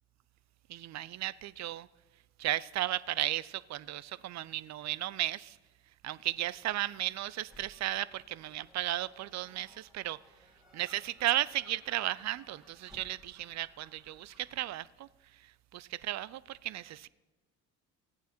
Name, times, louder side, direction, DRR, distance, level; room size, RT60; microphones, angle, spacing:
voice 1, 0.7-1.9 2.4-5.6 6.0-10.2 10.7-15.1 15.7-17.1, right 14 dB, 40° right, 0.4 m, -35 dB
Gull seagull, 6.2-14.7, equal, ahead, 2.0 m, -61 dB
15.0 x 9.1 x 4.3 m
hypercardioid pair, 55°, 43 cm